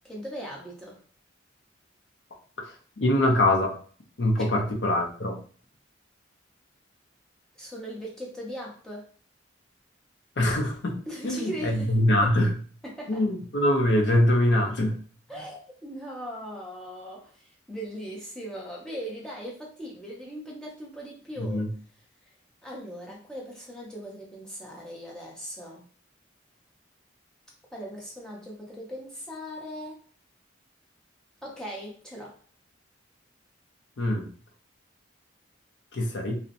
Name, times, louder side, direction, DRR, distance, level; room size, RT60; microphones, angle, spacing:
voice 1, 0.0-1.0 4.4-4.5 7.6-9.1 11.1-12.3 12.8-13.3 15.3-21.7 22.6-25.9 27.7-30.0 31.4-32.4, equal, 5° left, -4 dB, 0.5 m, -39 dB
voice 2, 2.6-3.7 4.2-5.4 10.4-12.5 13.1-15.0 21.4-21.7 34.0-34.3 35.9-36.4, left 1 dB, 60° left, 1 dB, 0.5 m, -24 dB
2.7 x 2.0 x 2.5 m, 0.44 s
head